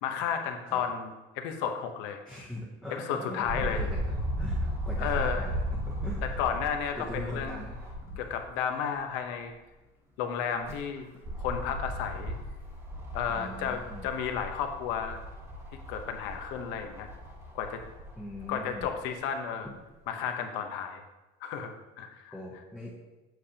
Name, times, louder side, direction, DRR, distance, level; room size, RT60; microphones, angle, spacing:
voice 1, 0.0-2.2 2.9-3.8 5.0-5.5 6.2-7.7 8.2-9.5 10.2-11.1 11.4-12.4 13.1-15.2 15.9-17.1 17.5-17.8 18.5-19.7 20.1-21.0 21.4-22.3, left 7 dB, 80° left, 5 dB, 0.9 m, -33 dB
voice 2, 2.2-5.5 5.8-6.4 6.9-7.9 13.3-14.1 18.2-18.9 19.6-19.7 22.3-22.9, left 1 dB, 5° left, -6 dB, 0.8 m, -41 dB
sound 1, 3.4-8.5 8.9-9.0 10.4-18.9 19.7-19.8, equal, 15° right, 1.2 m, -36 dB
7.8 x 6.7 x 2.9 m, 1.1 s
cardioid pair, 170°, 19 cm